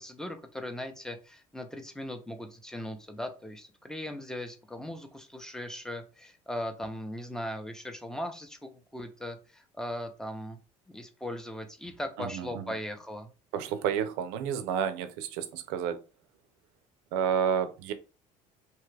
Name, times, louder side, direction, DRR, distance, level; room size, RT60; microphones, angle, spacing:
voice 1, 0.0-10.6 10.9-13.3, left 1 dB, 5° left, 0.6 m, -39 dB
voice 2, 12.2-12.6 13.5-16.0 17.1-17.9, right 8 dB, 85° right, 0.5 m, -30 dB
2.9 x 2.3 x 3.2 m
cardioid pair, 110°, 15 cm